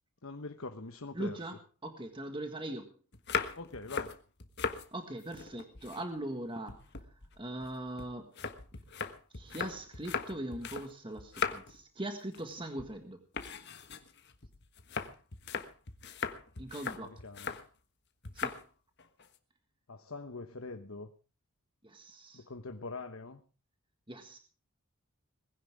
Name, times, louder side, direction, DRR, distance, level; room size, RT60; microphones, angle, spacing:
voice 1, 0.2-1.5 3.5-4.2 16.9-17.6 19.9-21.1 22.3-23.4, left 3 dB, 65° left, 6 dB, 1.2 m, -43 dB
voice 2, 1.1-1.6 1.8-2.9 4.9-6.8 7.4-8.3 9.3-13.2 16.6-17.2 18.3-18.6 21.8-22.4 24.1-24.4, right 1 dB, 20° right, 6 dB, 1.7 m, -40 dB
sound 1, 3.1-4.9 5.2-6.4 6.7-10.9 11.2-11.8 12.2-12.5 12.8-13.0 13.3-17.7 18.2-18.6 19.0-19.4, left 5 dB, 50° left, 1.5 m, -39 dB
20.5 x 16.0 x 3.6 m, 0.36 s
head